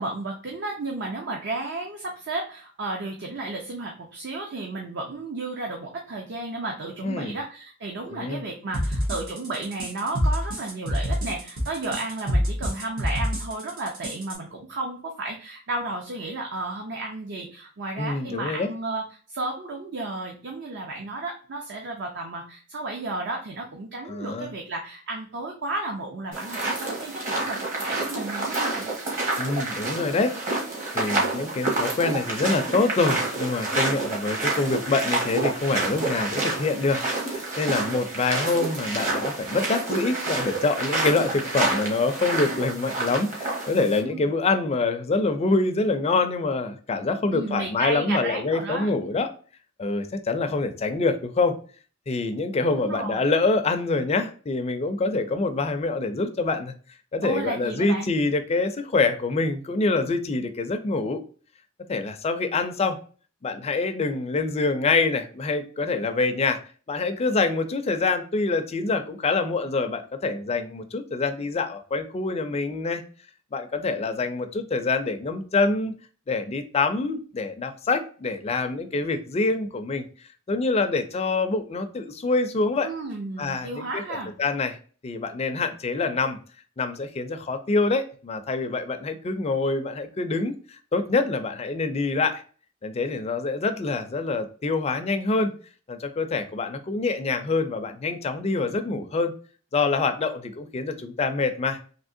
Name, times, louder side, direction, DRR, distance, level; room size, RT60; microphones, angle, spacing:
voice 1, 0.0-28.9 44.0-44.3 47.3-48.9 52.7-53.3 57.2-58.1 82.8-84.3, right 2 dB, 60° right, 1 dB, 0.6 m, -33 dB
voice 2, 7.0-7.3 8.1-8.4 18.0-18.7 24.1-24.5 29.4-30.3 30.9-49.3 49.8-51.6 52.1-56.7 57.1-61.2 61.9-63.0 63.4-66.6 66.9-73.0 73.5-75.9 76.3-80.0 80.5-82.9 83.4-84.8 85.0-86.4 86.8-90.6 90.9-92.4 92.8-95.5 95.9-99.3 99.7-101.8, left 3 dB, 30° left, 8 dB, 0.4 m, -25 dB
sound 1, 8.7-14.4, equal, 75° right, 1.3 m, -27 dB
sound 2, 26.3-44.0, right 2 dB, 40° right, 1.2 m, -28 dB
3.5 x 2.8 x 2.6 m, 0.40 s
head